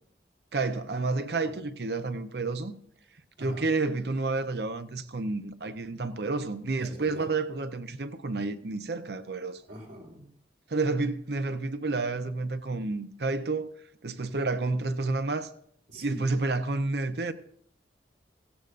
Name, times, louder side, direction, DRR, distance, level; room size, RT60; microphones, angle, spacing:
voice 1, 0.5-2.7 3.4-9.6 10.7-13.7 14.0-15.5 16.0-17.3, right 3 dB, 70° right, 0.8 m, -30 dB
voice 2, 6.8-7.2 9.7-10.3 15.9-16.2, right 1 dB, 85° right, 4.6 m, -43 dB
17.0 x 16.0 x 2.6 m
head